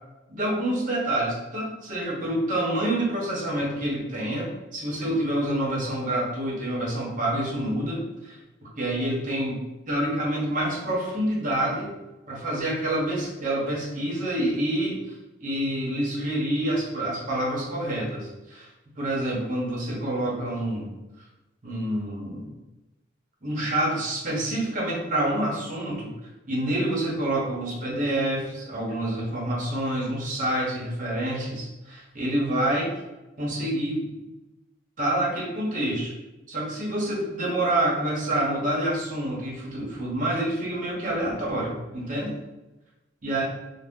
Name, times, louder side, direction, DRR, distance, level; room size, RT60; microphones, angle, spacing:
voice 1, 0.3-11.9 12.3-15.0 15.4-18.7 19.0-20.9 21.6-22.5 23.4-26.1 26.5-32.9 33.4-34.2 35.0-36.1 36.5-42.4 43.2-43.4, right 1 dB, 45° right, -4 dB, 0.9 m, -27 dB
2.6 x 2.1 x 3.5 m, 1.0 s
head